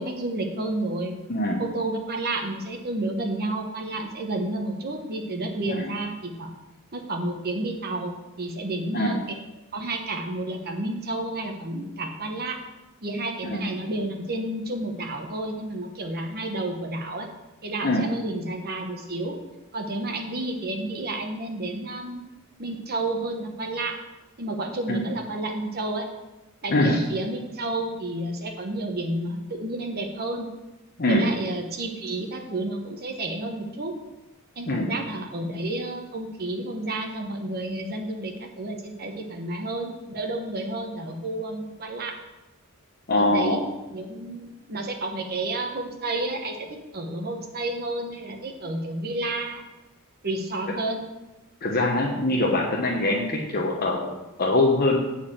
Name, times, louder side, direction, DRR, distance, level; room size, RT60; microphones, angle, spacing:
voice 1, 0.0-1.2 1.6-6.5 6.9-9.3 9.7-12.6 13.0-17.3 17.6-19.3 19.7-22.2 22.6-24.0 24.4-26.1 26.6-30.5 31.1-33.9 34.6-42.1 43.2-43.6 43.9-46.7 46.9-49.6 50.2-51.0, right 2 dB, 45° right, 2 dB, 1.1 m, -31 dB
voice 2, 1.3-1.6 5.7-5.9 8.9-9.2 13.4-13.6 17.8-18.0 24.9-25.0 26.7-27.0 31.0-31.2 34.7-34.9 43.1-43.6 51.6-55.0, left 2 dB, 45° left, -1 dB, 1.0 m, -23 dB
8.5 x 4.7 x 7.5 m, 1.0 s
head